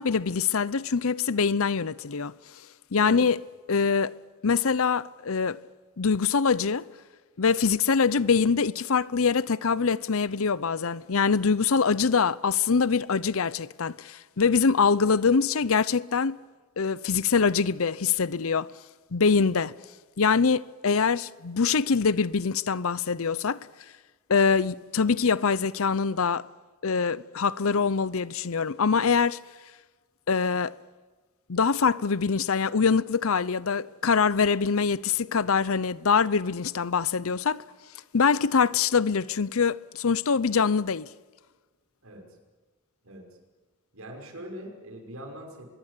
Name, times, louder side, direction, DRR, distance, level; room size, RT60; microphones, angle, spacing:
voice 1, 0.0-2.3 2.9-3.4 3.7-4.1 4.4-5.6 6.0-6.9 7.4-16.4 16.8-18.7 19.1-19.7 20.2-23.7 24.3-26.5 26.8-29.4 30.3-30.8 31.5-37.6 38.1-41.1, left 5 dB, 70° left, 0.7 m, -24 dB
voice 2, 43.9-45.6, equal, 75° right, 5.8 m, -42 dB
24.5 x 22.5 x 8.3 m
head